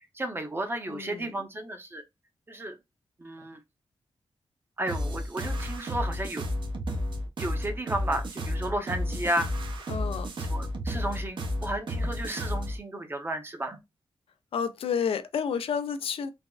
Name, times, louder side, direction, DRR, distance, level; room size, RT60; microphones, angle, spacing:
voice 1, 0.2-2.0 2.5-2.8 3.2-3.6 4.8-6.4 7.4-9.5 10.5-13.8, right 1 dB, 25° right, 0.6 m, -33 dB
voice 2, 0.9-1.4 9.9-10.3 14.5-16.3, left 7 dB, 85° left, 0.4 m, -30 dB
sound 1, 4.9-12.8, left 1 dB, 60° right, 0.7 m, -32 dB
3.4 x 2.0 x 2.3 m
wide cardioid pair, 110°, 9 cm